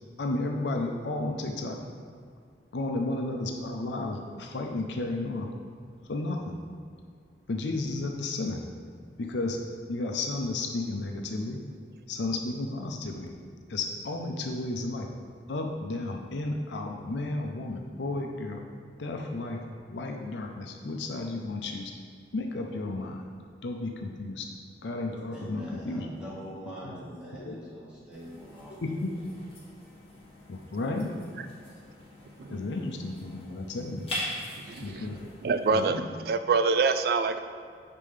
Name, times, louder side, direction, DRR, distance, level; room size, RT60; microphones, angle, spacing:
voice 1, 0.2-1.8 2.7-5.5 6.1-6.6 7.5-8.6 9.2-9.6 9.9-11.6 12.1-13.3 13.7-15.1 15.5-18.6 19.0-19.6 19.9-21.9 22.3-23.2 23.6-24.5 24.8-26.1 26.8-26.9 27.3-27.6 28.6-29.1 30.5-31.1 32.5-34.1 34.8-35.2 35.7-36.0, left 2 dB, 90° left, 2 dB, 0.6 m, -33 dB
voice 2, 25.3-28.8 31.6-31.9, equal, 5° right, -8 dB, 1.6 m, -43 dB
sound 1, 28.1-35.9, left 1 dB, 35° left, 1.6 m, -42 dB
voice 3, 34.7-35.0 35.4-37.4, right 4 dB, 60° right, 10 dB, 0.3 m, -26 dB
6.7 x 5.3 x 3.3 m, 2.2 s
head